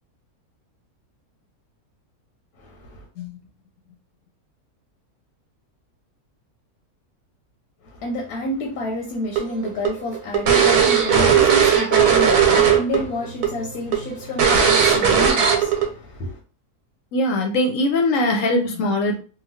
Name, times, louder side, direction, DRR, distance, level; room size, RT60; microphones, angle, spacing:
voice 1, 2.6-3.1 7.8-16.4, left 1 dB, 85° left, 1.1 m, -29 dB
sound 1, 9.4-13.0 13.2-13.5 13.9-14.0 14.4-15.8, right 7 dB, 80° right, 1.2 m, -16 dB
voice 2, 17.1-19.2, left 1 dB, 65° left, 0.9 m, -21 dB
3.0 x 2.3 x 2.7 m
omnidirectional pair, 1.6 m